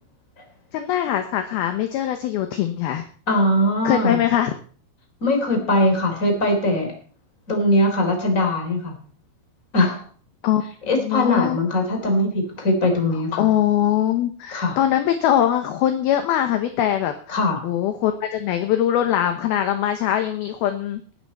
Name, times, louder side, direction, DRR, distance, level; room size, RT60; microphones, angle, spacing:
voice 1, 0.7-3.1 3.8-4.5 10.4-11.6 13.4-17.4 17.6-21.0, left 11 dB, 70° left, 7 dB, 2.5 m, -22 dB
voice 2, 3.3-4.2 5.2-6.9 7.5-8.9 9.7-10.0 10.9-13.5 14.5-14.8 17.3-17.6, left 1 dB, 20° left, 3 dB, 3.4 m, -21 dB
19.0 x 10.5 x 4.3 m, 0.42 s
omnidirectional pair, 5.3 m